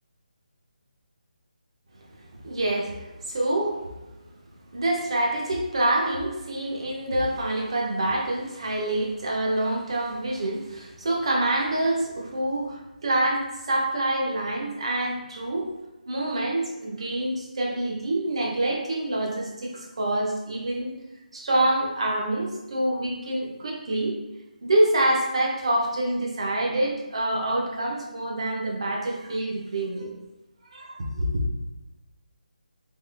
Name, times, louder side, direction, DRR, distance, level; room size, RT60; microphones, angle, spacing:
voice 1, 2.4-3.8 4.7-15.7 16.1-21.0 21.3-24.2 24.6-30.1 30.7-31.4, right 1 dB, 40° right, -1 dB, 0.7 m, -26 dB
3.6 x 2.8 x 3.3 m, 1.0 s
hypercardioid pair, 175°, 5 cm